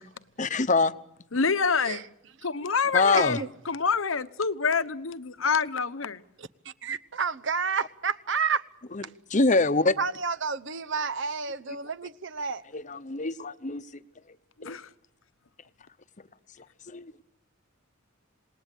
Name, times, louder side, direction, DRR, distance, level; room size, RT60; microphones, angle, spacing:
voice 1, 0.4-0.9 2.6-3.4 8.9-9.0 9.3-10.0 12.7-13.9 14.3-14.4 14.6-14.8 16.9-17.2, left 3 dB, 35° left, 0.9 m, -25 dB
voice 2, 1.3-2.0 2.4-6.2 14.6-14.9, left 5 dB, 70° left, 1.0 m, -27 dB
voice 3, 3.2-3.5 6.4-8.7 10.0-12.6, right 5 dB, 60° right, 1.0 m, -30 dB
27.5 x 19.5 x 8.4 m
head